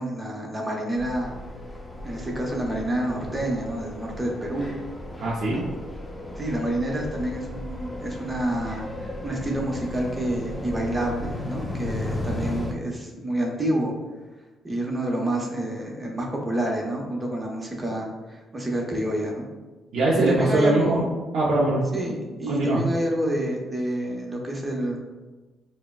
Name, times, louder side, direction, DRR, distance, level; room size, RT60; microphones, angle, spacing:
voice 1, 0.0-1.3 2.0-4.7 5.5-5.6 6.4-14.0 14.6-19.4 20.3-21.2 21.9-25.0, right 1 dB, 20° right, -1 dB, 0.9 m, -28 dB
sound 1, 0.9-12.7, left 1 dB, 15° left, 0.7 m, -35 dB
voice 2, 5.2-5.6 19.9-21.0 21.3-21.8 22.5-22.8, right 2 dB, 75° right, -6 dB, 0.7 m, -21 dB
5.8 x 2.2 x 2.3 m, 1.2 s
cardioid pair, 90°, 0 cm